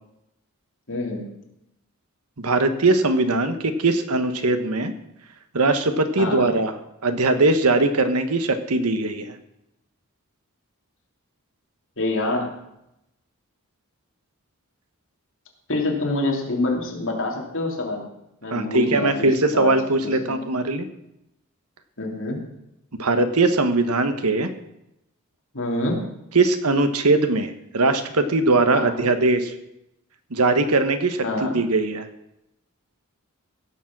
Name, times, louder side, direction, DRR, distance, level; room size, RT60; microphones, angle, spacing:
voice 1, 0.9-1.2 6.2-6.5 12.0-12.5 15.7-18.0 18.4-20.5 22.0-22.4 25.5-26.0 28.7-29.1 31.2-31.6, left 2 dB, 60° left, -1 dB, 3.1 m, -26 dB
voice 2, 2.4-4.9 5.5-6.7 7.0-9.3 18.5-20.9 23.0-24.5 26.3-29.5 30.3-31.3 31.5-32.1, right 2 dB, 90° right, 9 dB, 1.3 m, -20 dB
16.5 x 7.4 x 6.1 m, 0.84 s
head